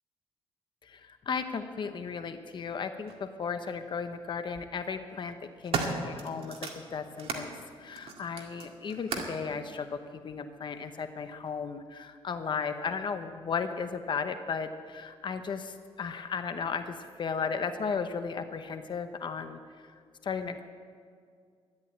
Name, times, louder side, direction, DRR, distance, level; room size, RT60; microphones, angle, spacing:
voice 1, 0.8-7.5 7.8-20.6, left 5 dB, 50° left, 8 dB, 0.8 m, -35 dB
sound 1, 3.1-3.2 4.3-4.6 5.2-7.5 7.9-9.4 10.3-10.4, right 4 dB, 65° right, 2.0 m, -36 dB
13.0 x 11.0 x 8.5 m, 2.1 s
cardioid pair, 120°, 11 cm